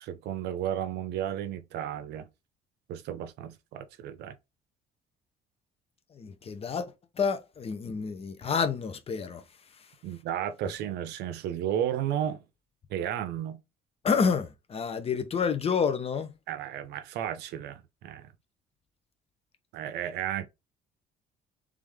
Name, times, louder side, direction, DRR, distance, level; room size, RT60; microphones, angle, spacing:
voice 1, 0.0-2.3 2.9-4.3 10.0-12.4 12.9-13.6 16.5-18.3 19.7-20.5, right 10 dB, 80° right, 0.7 m, -33 dB
voice 2, 6.1-9.4 14.0-16.3, left 6 dB, 35° left, 0.8 m, -29 dB
3.6 x 3.4 x 3.4 m
cardioid pair, 110°, 17 cm